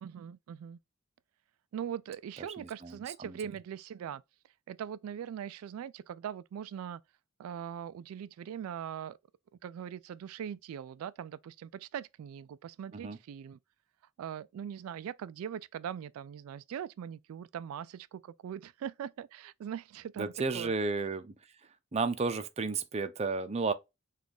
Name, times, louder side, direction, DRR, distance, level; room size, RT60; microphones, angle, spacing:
voice 1, 0.0-0.8 1.7-4.2 4.7-7.0 7.4-9.2 9.6-13.6 14.2-20.7, right 9 dB, 90° right, 0.3 m, -41 dB
voice 2, 2.4-3.4 12.9-13.2 20.2-21.3 21.9-23.7, right 4 dB, 30° right, 0.5 m, -33 dB
5.9 x 2.4 x 3.4 m
head